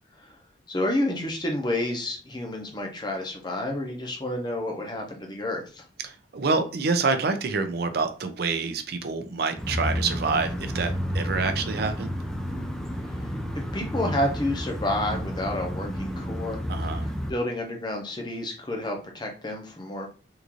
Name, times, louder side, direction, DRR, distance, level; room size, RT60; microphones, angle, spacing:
voice 1, 0.7-5.8 13.1-13.3 13.7-16.6 17.0-20.1, left 1 dB, 25° left, 2 dB, 0.7 m, -30 dB
voice 2, 6.0-12.1 16.7-17.1, right 4 dB, 55° right, 8 dB, 0.5 m, -27 dB
sound 1, 9.6-17.3, equal, 5° left, 0.4 m, -31 dB
3.7 x 2.6 x 2.9 m, 0.37 s
head